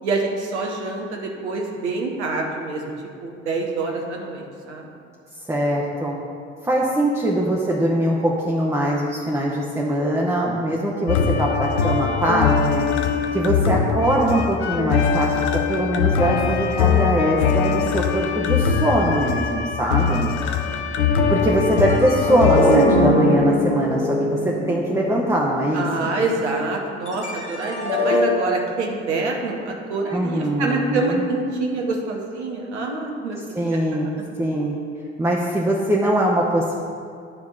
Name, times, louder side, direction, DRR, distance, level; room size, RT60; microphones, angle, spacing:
voice 1, 0.0-2.8 3.2-4.9 10.7-10.8 13.1-13.2 19.8-20.0 20.7-21.1 25.7-33.8, right 3 dB, 75° right, 0 dB, 1.1 m, -26 dB
voice 2, 5.5-6.1 6.6-12.9 13.3-15.4 15.7-20.4 21.3-24.4 24.7-26.1 30.1-31.2 33.5-34.8 35.2-36.8, right 1 dB, 10° right, -3 dB, 1.0 m, -22 dB
sound 1, 11.1-22.9, left 6 dB, 70° left, 0.7 m, -21 dB
sound 2, 21.8-26.1 27.1-28.2, left 1 dB, 85° left, 1.0 m, -22 dB
10.0 x 3.5 x 6.5 m, 2.3 s
figure-of-eight pair, 55°, 35 cm